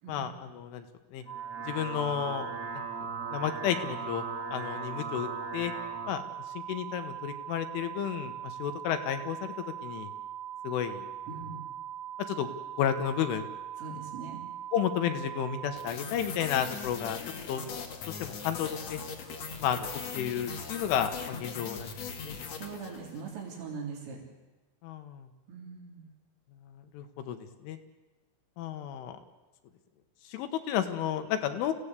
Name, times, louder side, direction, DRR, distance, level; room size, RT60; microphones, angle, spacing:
voice 1, 0.1-0.8 1.1-1.2 1.7-2.5 2.7-2.8 3.3-4.2 4.5-5.7 6.1-6.2 6.6-9.5 9.8-10.1 10.6-11.1 12.3-12.5 12.8-13.4 14.7-17.2 17.5-17.6 18.1-19.0 19.6-21.9 22.2-22.4 24.8-25.3 26.9-27.4 27.6-27.8 28.6-29.2 30.3-31.7, left 9 dB, 80° left, 7 dB, 3.7 m, -32 dB
sound 1, 1.2-6.2, right 3 dB, 40° right, 2.5 m, -39 dB
sound 2, 1.3-15.9, right 10 dB, 30° left, 2.1 m, -41 dB
voice 2, 11.3-11.6 13.8-14.4 22.5-24.2 25.5-26.1, right 5 dB, 80° right, -1 dB, 5.9 m, -41 dB
sound 3, 15.8-23.3, left 6 dB, 50° left, 2.1 m, -40 dB
28.0 x 16.5 x 8.4 m, 1.1 s
omnidirectional pair, 5.7 m